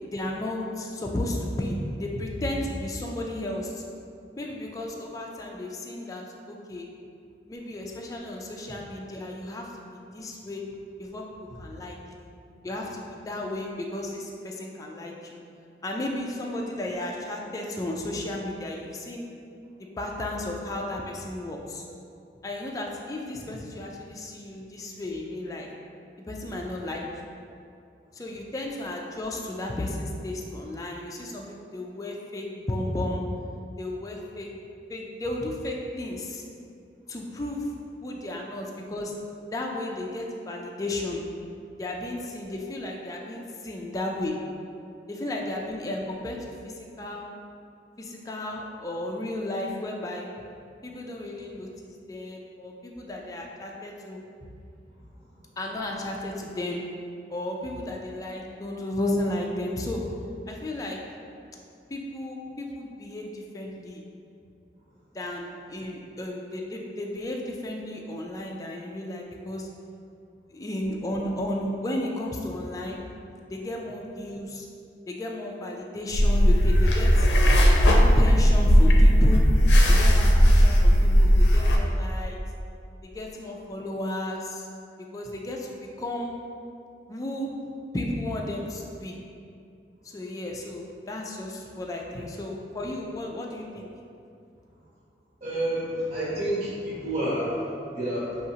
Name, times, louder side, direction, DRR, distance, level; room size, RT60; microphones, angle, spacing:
voice 1, 0.0-3.8 4.4-6.9 7.5-10.6 11.0-12.3 12.6-15.4 15.8-19.3 19.8-21.8 22.4-25.7 26.3-27.0 28.1-33.2 33.8-34.5 34.9-36.4 37.1-37.7 38.0-39.1 39.5-41.2 41.8-44.3 45.1-46.4 46.6-47.3 48.0-50.3 50.8-54.2 55.6-56.8 57.3-60.1 60.5-61.0 61.9-64.0 65.1-69.7 70.5-73.0 73.5-74.7 75.1-77.3 77.7-79.4 79.9-82.4 83.0-84.7 85.1-86.3 87.1-87.5 87.9-89.2 90.1-93.9, left 1 dB, 20° left, -1 dB, 0.3 m, -33 dB
sound 1, 76.1-81.8, equal, 75° left, 0.5 m, -17 dB
voice 2, 95.4-98.4, right 1 dB, 55° right, -11 dB, 1.3 m, -29 dB
5.9 x 2.8 x 2.8 m, 2.5 s
head